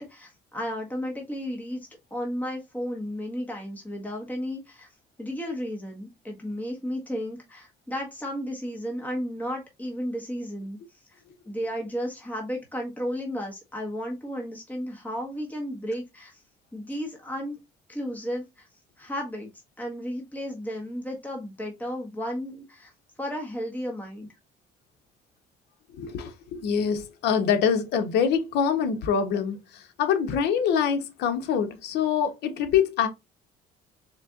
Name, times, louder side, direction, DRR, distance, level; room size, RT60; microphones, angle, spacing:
voice 1, 0.0-1.8 2.1-4.9 5.2-10.8 11.5-16.4 16.7-17.5 17.9-18.7 19.0-19.5 19.8-22.9 23.2-24.3, equal, 10° left, 1.5 m, -33 dB
voice 2, 25.9-33.1, left 7 dB, 80° left, 0.9 m, -25 dB
4.2 x 3.3 x 2.4 m
cardioid pair, 110°, 17 cm